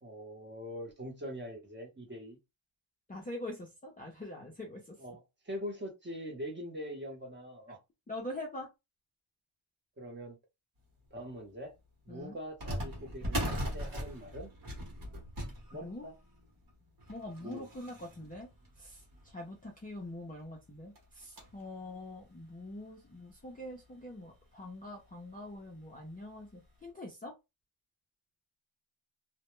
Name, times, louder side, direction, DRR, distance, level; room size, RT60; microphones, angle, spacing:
voice 1, 0.0-2.4 5.0-7.8 10.0-10.4 11.1-11.7 12.1-14.5 15.7-16.1 17.4-17.7, equal, 25° right, 0.7 m, -43 dB
voice 2, 3.1-4.9 8.1-8.7 12.1-12.4 15.7-16.0 17.1-18.5 18.8-19.0 19.3-27.3, left 1 dB, 20° left, 0.4 m, -44 dB
sound 1, 11.1-11.2 12.6-19.5 20.1-20.2 20.4-20.5 20.9-21.7 22.2-22.3 23.1-23.2 23.6-23.7 25.1-25.3 25.8-25.9 26.5-26.6, equal, 45° right, 1.0 m, -40 dB
2.1 x 2.1 x 2.9 m
wide cardioid pair, 170°, 47 cm